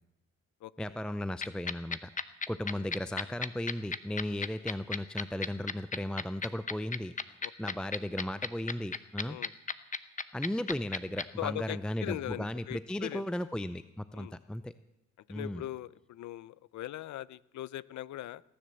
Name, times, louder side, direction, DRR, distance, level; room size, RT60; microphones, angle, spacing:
voice 1, 0.8-2.1 2.5-9.4 10.3-14.7 15.3-15.6, left 1 dB, 5° left, 13 dB, 0.5 m, -36 dB
sound 1, 1.4-11.2, left 5 dB, 25° left, 0.9 m, -33 dB
voice 2, 7.4-7.7 9.3-9.5 11.4-13.2 14.1-14.4 15.3-18.4, left 14 dB, 70° left, 21 dB, 0.6 m, -40 dB
18.0 x 10.0 x 7.6 m, 0.83 s
cardioid pair, 90°, 30 cm